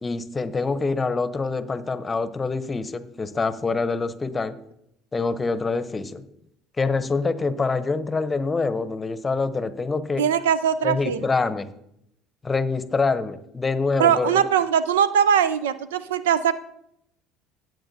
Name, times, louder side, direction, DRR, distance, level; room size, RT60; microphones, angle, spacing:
voice 1, 0.0-4.6 5.1-6.2 6.8-10.2 10.8-11.7 12.4-14.4, left 4 dB, 25° left, 13 dB, 0.8 m, -25 dB
voice 2, 10.2-11.3 14.0-16.5, right 8 dB, 90° right, 15 dB, 0.4 m, -21 dB
15.5 x 7.8 x 2.7 m, 0.77 s
hypercardioid pair, 75°, 0 cm